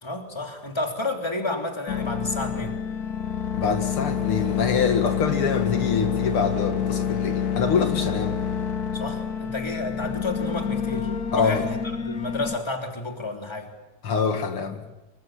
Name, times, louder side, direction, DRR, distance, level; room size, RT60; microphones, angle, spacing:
voice 1, 0.0-2.8 8.9-13.7, left 2 dB, 10° left, 3 dB, 2.9 m, -31 dB
sound 1, 1.9-12.6, left 7 dB, 50° left, 1.7 m, -27 dB
voice 2, 3.5-8.4 11.3-11.7 14.0-14.8, left 5 dB, 75° left, 6 dB, 2.7 m, -25 dB
26.5 x 24.5 x 7.3 m, 1.1 s
omnidirectional pair, 2.4 m